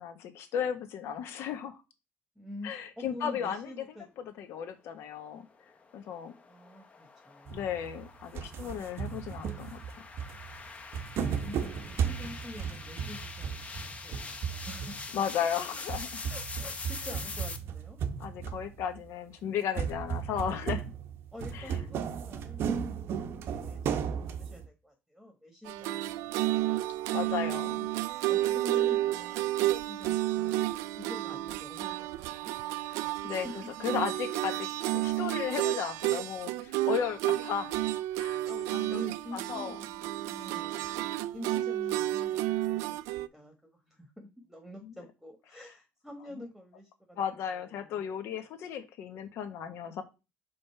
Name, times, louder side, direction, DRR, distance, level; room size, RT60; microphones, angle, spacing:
voice 1, 0.0-1.8 2.6-3.8 4.2-5.5 5.9-6.3 7.5-10.1 15.1-16.3 18.2-20.9 21.5-21.8 27.1-27.9 32.9-37.8 38.2-39.0 39.3-39.8 44.8-44.9 47.2-50.0, left 8 dB, 65° left, 8 dB, 1.3 m, -35 dB
voice 2, 2.3-4.1 6.5-7.7 11.2-14.1 14.5-15.0 16.3-18.0 21.3-26.9 28.3-32.5 33.4-33.7 36.5-36.6 38.9-47.2 47.4-48.0, left 1 dB, ahead, 4 dB, 1.3 m, -47 dB
sound 1, 5.5-17.6, left 4 dB, 30° left, 0.9 m, -44 dB
sound 2, 7.5-8.1 8.3-15.3 15.7-19.0 19.7-24.7, right 7 dB, 55° right, 0.8 m, -35 dB
sound 3, 25.7-43.3, right 15 dB, 85° right, 0.4 m, -31 dB
5.3 x 3.6 x 5.6 m, 0.28 s
cardioid pair, 120°, 5 cm